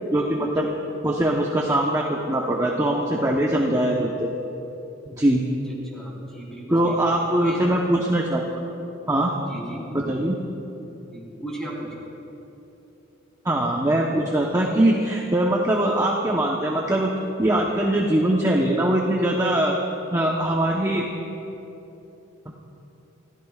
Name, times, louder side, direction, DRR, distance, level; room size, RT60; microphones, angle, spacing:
voice 1, 0.1-0.7 1.0-4.3 5.1-5.4 6.7-8.5 9.1-9.3 9.9-10.4 13.4-17.1 17.4-19.8 20.1-21.1 22.5-22.6, right 1 dB, 15° right, -2 dB, 0.9 m, -22 dB
voice 2, 5.7-7.1 7.4-7.8 9.5-9.9 11.1-11.9, right 1 dB, 5° left, -5 dB, 4.0 m, -36 dB
28.5 x 15.0 x 2.4 m, 2.9 s
head